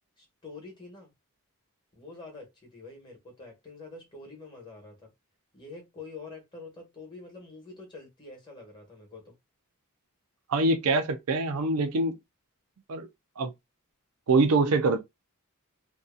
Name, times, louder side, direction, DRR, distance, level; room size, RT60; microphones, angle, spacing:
voice 1, 0.2-1.1 1.9-5.1 5.5-9.4, left 3 dB, 20° left, 1.1 m, -46 dB
voice 2, 10.5-12.1 12.9-13.1 13.4-13.5 14.3-15.0, right 3 dB, 75° right, 0.5 m, -24 dB
2.7 x 2.3 x 2.4 m
head